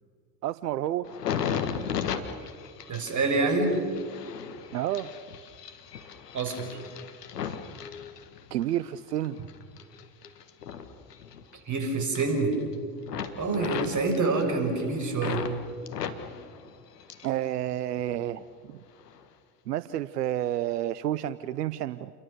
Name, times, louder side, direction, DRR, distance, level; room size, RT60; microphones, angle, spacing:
voice 1, 0.4-1.1 4.7-5.1 8.5-9.4 17.2-18.4 18.7-18.8 19.7-22.1, right 12 dB, 85° right, 16 dB, 0.7 m, -30 dB
sound 1, 1.0-8.7 9.2-11.8 12.0-12.7 13.0-15.5 15.9-17.4 17.7-18.4 19.0-19.2, left 7 dB, 85° left, 1.6 m, -36 dB
voice 2, 2.9-3.7 6.3-6.7 11.7-12.6 13.4-15.4, right 3 dB, 40° right, 4 dB, 6.6 m, -26 dB
29.0 x 23.0 x 6.8 m, 2.1 s
hypercardioid pair, 65°, 46 cm